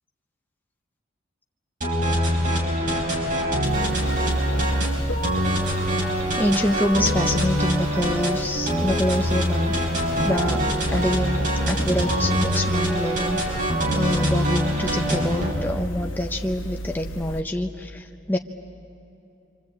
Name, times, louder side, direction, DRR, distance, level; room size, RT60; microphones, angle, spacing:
sound 1, 1.8-15.5, equal, 40° right, 4.7 m, -24 dB
sound 2, 3.6-17.4, equal, 80° left, 1.1 m, -38 dB
voice 1, 6.4-9.7 10.2-10.6 10.9-13.4 13.9-18.4, left 1 dB, 10° left, 3 dB, 0.7 m, -26 dB
26.5 x 25.0 x 8.5 m, 2.8 s
head